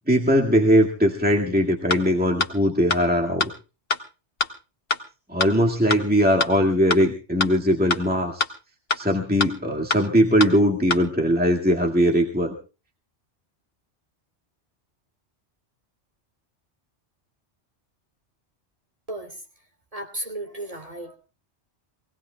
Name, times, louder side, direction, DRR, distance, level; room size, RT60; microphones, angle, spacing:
voice 1, 0.1-3.5 5.3-8.4 9.0-12.5, equal, 10° right, 1 dB, 1.9 m, -20 dB
sound 1, 1.9-2.0 2.4-2.5 2.9-3.0 3.4-3.5 3.9-4.0 4.4-4.5 4.9-5.0 5.4-5.5 5.9-6.0 6.4-6.5 6.9-7.0 7.4-7.5 7.9-8.0 8.4-8.5 8.9-9.0 9.4-9.5 9.9-10.0 10.4-10.5 10.9-11.0, left 5 dB, 55° left, 1.3 m, -23 dB
voice 2, 19.1-19.4 19.9-21.2, right 1 dB, 30° right, 3 dB, 3.2 m, -34 dB
25.0 x 18.5 x 2.3 m, 0.32 s
omnidirectional pair, 1.2 m